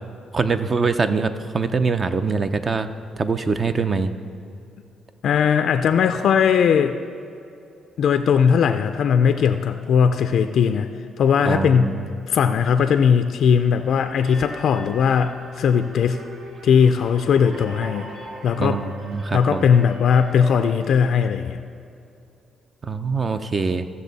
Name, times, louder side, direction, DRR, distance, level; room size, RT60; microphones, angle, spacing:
voice 1, 0.3-2.9 3.2-4.1 11.4-12.1 18.6-19.7 22.8-23.9, right 4 dB, 35° right, 10 dB, 0.6 m, -23 dB
voice 2, 5.2-7.0 8.0-10.9 11.2-11.9 12.3-16.2 16.6-18.1 18.4-18.8 19.3-21.6, left 7 dB, 70° left, 7 dB, 0.4 m, -18 dB
sound 1, 14.0-21.1, right 1 dB, 55° right, 1.2 m, -39 dB
15.0 x 6.6 x 4.0 m, 2.6 s
cardioid pair, 90°, 0 cm